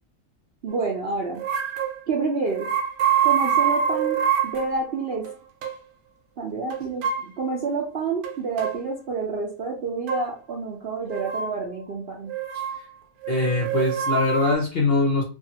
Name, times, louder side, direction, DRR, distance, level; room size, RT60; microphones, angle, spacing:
voice 1, 0.6-1.4 2.1-2.7 3.2-5.3 6.4-12.3, right 4 dB, 60° right, -1 dB, 0.7 m, -28 dB
sound 1, 1.4-2.0 2.5-4.8 5.2-5.3 5.6-5.8 6.7-7.3 8.2-8.8 10.1-10.2 11.1-11.5 12.3-12.8 13.2-14.5, right 8 dB, 75° right, 1.0 m, -25 dB
voice 2, 13.3-15.2, left 2 dB, 55° left, -1 dB, 0.7 m, -22 dB
2.6 x 2.4 x 2.8 m, 0.35 s
omnidirectional pair, 1.6 m